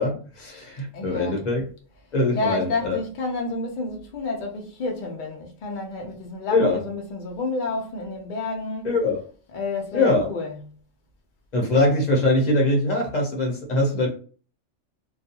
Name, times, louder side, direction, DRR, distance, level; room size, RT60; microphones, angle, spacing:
voice 1, 0.0-1.6 2.1-3.0 6.5-6.8 8.8-9.2 9.9-10.3 11.5-14.1, left 2 dB, 40° left, 0.8 m, -22 dB
voice 2, 0.9-1.5 2.3-8.9 9.5-10.6, left 3 dB, 75° left, 0.4 m, -30 dB
2.4 x 2.3 x 2.7 m
omnidirectional pair, 1.4 m